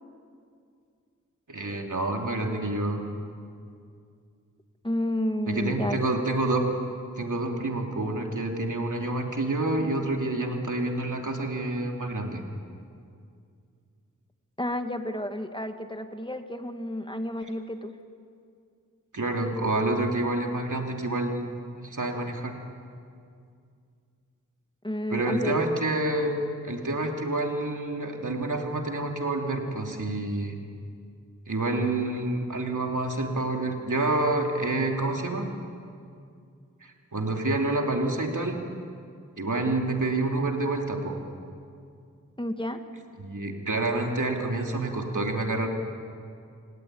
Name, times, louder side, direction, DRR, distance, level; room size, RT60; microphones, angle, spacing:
voice 1, 1.5-3.0 5.5-6.7 7.2-12.4 19.1-21.6 21.8-22.6 25.1-30.6 31.5-35.5 36.8-38.6 39.4-41.2 43.2-45.7, right 2 dB, 75° right, 2 dB, 3.0 m, -28 dB
voice 2, 4.8-6.1 14.6-17.9 24.8-25.6 42.4-42.8, left 1 dB, 15° left, 7 dB, 1.6 m, -31 dB
28.5 x 18.0 x 9.1 m, 2.4 s
wide cardioid pair, 45°, 31 cm